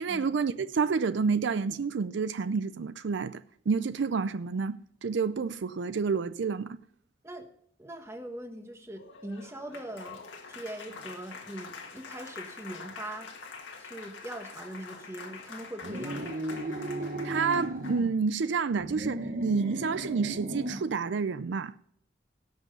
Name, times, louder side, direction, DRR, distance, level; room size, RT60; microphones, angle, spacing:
voice 1, 0.0-6.8 17.2-21.7, right 5 dB, 70° right, 0.4 m, -29 dB
voice 2, 7.8-13.3 13.8-16.4, right 1 dB, 15° right, 1.3 m, -41 dB
Applause, 8.9-18.1, left 4 dB, 75° left, 1.8 m, -45 dB
sound 1, 15.8-18.1 18.7-20.9, right 1 dB, 45° right, 1.0 m, -35 dB
17.5 x 6.2 x 5.4 m
head